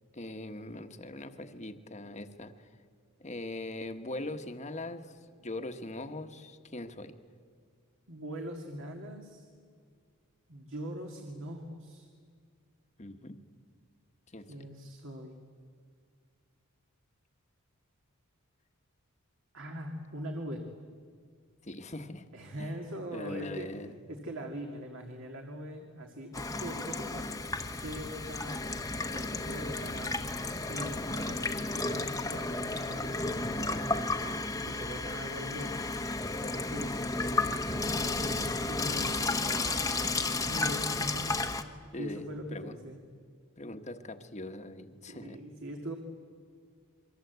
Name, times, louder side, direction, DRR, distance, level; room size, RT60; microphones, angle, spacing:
voice 1, 0.1-2.7 3.2-7.1 13.0-13.4 14.3-14.6 21.6-22.2 22.6-22.8 23.1-24.0 41.9-42.8 43.6-45.4, left 2 dB, 30° left, 7 dB, 1.3 m, -41 dB
voice 2, 8.1-9.5 10.5-12.1 14.5-15.4 19.5-20.6 22.3-23.7 24.1-27.3 27.8-30.3 30.7-35.9 36.4-43.0 45.1-46.0, equal, 60° right, 3 dB, 2.2 m, -42 dB
Water tap faucet / Sink (filling or washing), 26.3-41.6, left 3 dB, 15° left, 1.1 m, -33 dB
27.5 x 23.5 x 8.1 m, 2.1 s
head